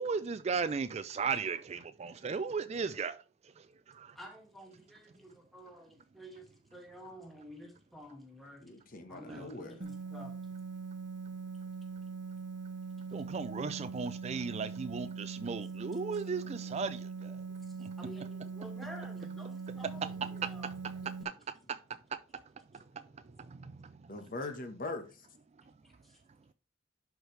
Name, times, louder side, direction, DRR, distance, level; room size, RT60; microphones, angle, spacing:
voice 1, 0.0-3.2 3.9-4.1 9.3-9.4 13.1-17.4 17.8-17.9 19.9-21.3 21.7-21.8 23.5-23.7, right 5 dB, 35° right, 0.4 m, -36 dB
voice 2, 4.2-8.6 9.1-10.4 17.7-20.7 25.8-26.2, equal, ahead, 2.2 m, -51 dB
voice 3, 8.6-9.8 24.1-25.3, left 2 dB, 50° left, 1.3 m, -41 dB
sound 1, 9.8-21.2, right 5 dB, 65° right, 0.9 m, -42 dB
11.0 x 4.8 x 3.3 m
head